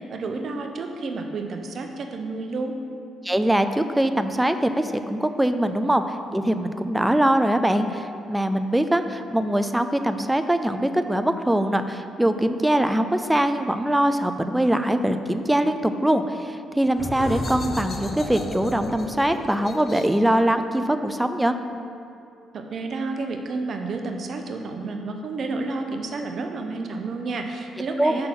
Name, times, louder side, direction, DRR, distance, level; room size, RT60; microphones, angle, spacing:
voice 1, 0.1-2.7 22.5-28.3, right 3 dB, 55° right, 4 dB, 0.6 m, -30 dB
voice 2, 3.2-21.5 28.0-28.1, right 1 dB, 10° right, 9 dB, 0.4 m, -22 dB
sound 1, 16.9-22.3, left 2 dB, 40° left, 0.7 m, -35 dB
5.8 x 3.7 x 6.0 m, 2.5 s
cardioid pair, 85°, 0 cm